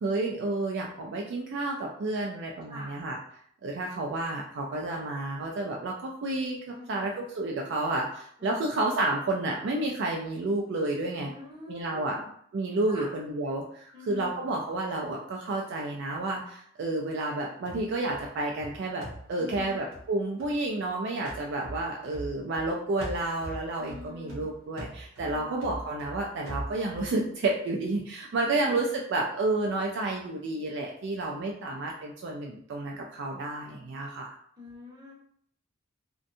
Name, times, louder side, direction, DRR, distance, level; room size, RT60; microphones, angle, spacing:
voice 1, 0.0-3.2 3.6-6.6 6.9-11.3 11.7-12.2 12.5-34.3, right 2 dB, 55° right, -1 dB, 0.3 m, -30 dB
voice 2, 6.7-7.1 8.4-8.7 11.2-12.3 12.9-13.1 13.9-14.3 19.4-19.8 23.8-24.5 25.2-25.7 28.3-28.8 34.6-35.1, left 2 dB, 20° right, -5 dB, 0.8 m, -45 dB
sound 1, 17.6-20.9 21.2-22.7 23.0-27.1, right 1 dB, 75° right, 0.7 m, -42 dB
2.6 x 2.2 x 2.6 m, 0.64 s
head